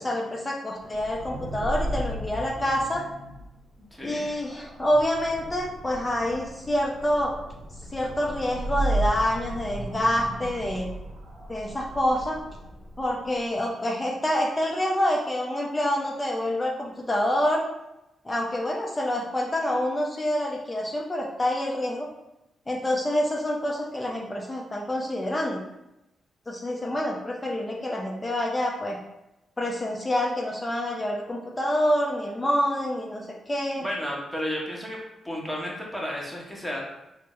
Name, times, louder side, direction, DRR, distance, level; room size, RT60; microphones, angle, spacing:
voice 1, 0.0-3.0 4.0-7.3 7.9-10.9 11.5-12.4 13.0-17.7 18.2-22.1 22.7-25.6 26.5-29.0 29.6-33.9, left 1 dB, 20° left, -1 dB, 0.5 m, -27 dB
sound 1, 0.8-13.4, right 1 dB, 75° right, 0.7 m, -35 dB
voice 2, 3.9-4.3 33.8-35.0 35.2-36.8, equal, ahead, -3 dB, 1.0 m, -32 dB
3.4 x 2.1 x 2.9 m, 0.89 s
cardioid pair, 70°, 0 cm